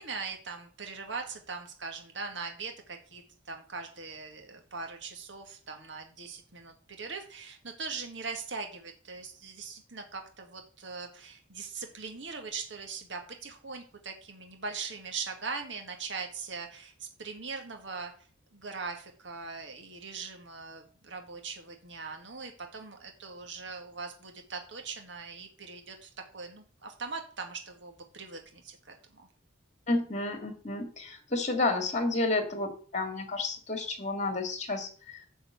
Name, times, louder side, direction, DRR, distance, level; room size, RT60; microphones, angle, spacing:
voice 1, 0.0-16.9 17.2-18.1 18.5-29.3, right 4 dB, 65° right, 4 dB, 1.9 m, -41 dB
voice 2, 29.9-35.3, left 2 dB, 35° left, 7 dB, 2.1 m, -31 dB
11.0 x 4.7 x 7.9 m, 0.42 s
head